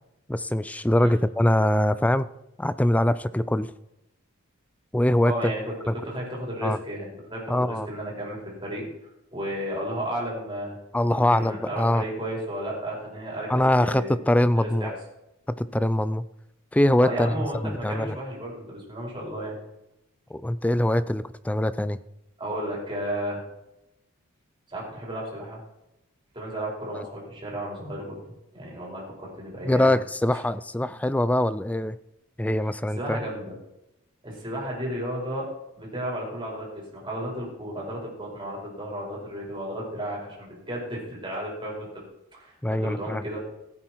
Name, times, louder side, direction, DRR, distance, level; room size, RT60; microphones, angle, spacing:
voice 1, 0.3-2.3 2.6-3.7 4.9-5.5 5.9-6.0 6.6-6.8 7.5-7.9 10.9-12.0 13.5-14.9 15.5-16.2 16.7-18.2 20.3-22.0 26.9-27.1 29.6-32.0 32.4-33.2 42.6-43.2, left 1 dB, 5° left, 15 dB, 0.3 m, -23 dB
voice 2, 5.2-5.6 6.0-8.9 9.3-10.7 11.1-13.5 13.8-14.2 14.6-14.9 17.0-19.5 22.4-23.4 24.7-25.6 26.3-28.2 28.5-30.0 32.9-33.5 34.2-35.5 35.8-41.9 42.3-43.4, right 1 dB, 20° right, -4 dB, 4.7 m, -33 dB
15.5 x 8.7 x 4.6 m, 0.88 s
head